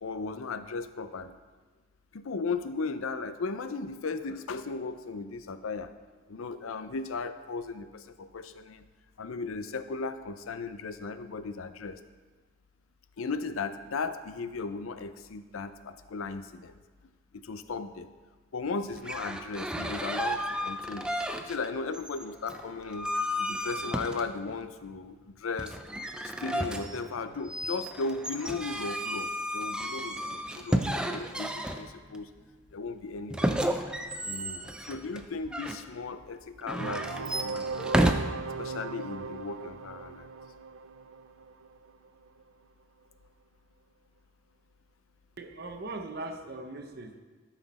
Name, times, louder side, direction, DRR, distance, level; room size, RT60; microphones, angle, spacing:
voice 1, 0.0-1.3 2.1-5.9 6.3-8.8 9.2-12.0 13.2-16.8 17.3-18.1 18.5-21.1 21.4-23.1 23.4-25.8 26.2-32.3 32.7-33.7 34.2-37.9 38.4-40.3, left 4 dB, 85° left, 11 dB, 0.5 m, -36 dB
sound 1, 18.9-21.7 21.9-24.6 25.6-32.2 33.3-35.8 36.6-38.1, equal, 5° right, 0.4 m, -32 dB
sound 2, 36.8-42.4, right 4 dB, 75° right, 0.4 m, -38 dB
voice 2, 45.4-47.2, right 2 dB, 50° right, 6 dB, 0.7 m, -40 dB
13.0 x 5.8 x 4.2 m, 1.4 s
head